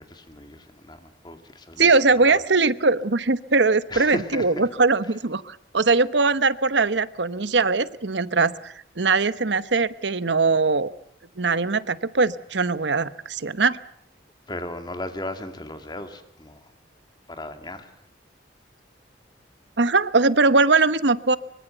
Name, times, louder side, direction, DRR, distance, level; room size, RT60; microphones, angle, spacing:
voice 1, 0.0-2.0 3.9-4.7 14.5-16.6 17.3-17.9, left 1 dB, 25° left, 7 dB, 2.5 m, -36 dB
voice 2, 1.8-10.9 11.4-13.8 19.8-21.4, right 3 dB, 75° right, 15 dB, 1.1 m, -21 dB
24.0 x 23.5 x 7.9 m, 0.68 s
head